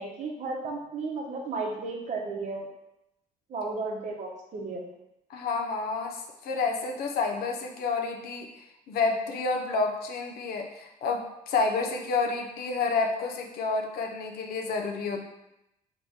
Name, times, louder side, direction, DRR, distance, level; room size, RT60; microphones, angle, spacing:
voice 1, 0.0-2.7 3.5-4.8, right 3 dB, 45° right, 0 dB, 0.9 m, -34 dB
voice 2, 5.3-15.3, left 4 dB, 65° left, 2 dB, 0.7 m, -29 dB
3.3 x 3.1 x 4.2 m, 0.89 s
cardioid pair, 110°, 17 cm